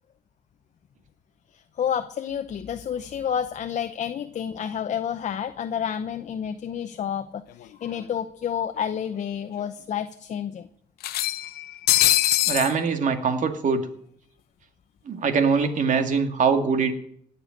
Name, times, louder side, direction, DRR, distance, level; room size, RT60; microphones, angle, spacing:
voice 1, 1.5-10.7, left 8 dB, 50° left, 9 dB, 0.8 m, -30 dB
sound 1, 7.6-7.7 8.0-8.1 9.2-9.3 9.6-9.7 11.0-12.7, left 14 dB, 80° left, 0.7 m, -22 dB
voice 2, 12.5-13.8 15.1-16.9, right 5 dB, 55° right, 6 dB, 2.2 m, -22 dB
18.5 x 6.9 x 9.0 m, 0.67 s
cardioid pair, 100°, 16 cm